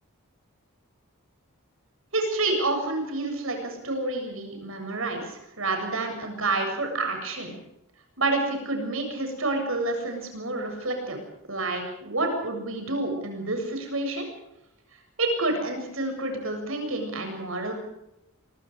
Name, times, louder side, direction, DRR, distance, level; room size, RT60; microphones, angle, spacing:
voice 1, 2.1-7.5 8.2-11.2 11.5-14.3 15.2-17.7, right 2 dB, 70° right, 4 dB, 7.7 m, -29 dB
26.5 x 23.0 x 5.1 m, 0.86 s
head